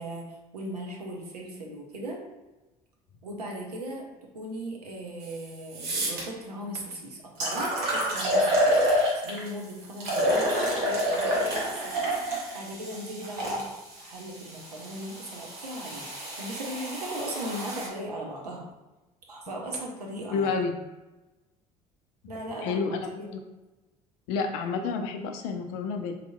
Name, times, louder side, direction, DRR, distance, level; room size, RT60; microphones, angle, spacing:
voice 1, 0.0-2.2 3.2-4.1 4.3-8.8 9.1-12.1 12.5-13.7 14.0-18.6 19.3-20.5 22.3-22.8 23.1-23.3, right 1 dB, 80° right, -1 dB, 0.6 m, -38 dB
sound 1, 5.2-5.3 5.7-6.2 6.9-7.0 7.4-9.5 10.0-13.6 14.4-17.9, equal, 55° right, 1.0 m, -28 dB
voice 2, 20.3-20.8 22.6-23.4 24.3-26.1, left 5 dB, 55° left, 6 dB, 0.4 m, -29 dB
3.9 x 2.8 x 2.2 m, 1.1 s
figure-of-eight pair, 55°, 20 cm